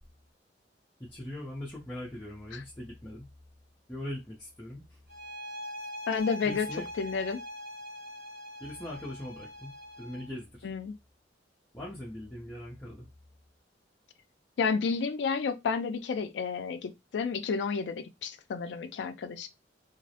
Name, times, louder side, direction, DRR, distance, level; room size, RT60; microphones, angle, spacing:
voice 1, 1.0-3.3 3.9-5.0 6.4-6.9 8.6-9.7 10.0-10.7 11.7-13.1, left 1 dB, 10° left, 0.5 m, -41 dB
sound 1, 5.1-10.4, equal, 55° right, 0.7 m, -42 dB
voice 2, 6.1-6.7 7.0-7.4 10.6-10.9 14.6-19.5, left 5 dB, 70° left, 0.3 m, -31 dB
2.4 x 2.0 x 2.7 m
head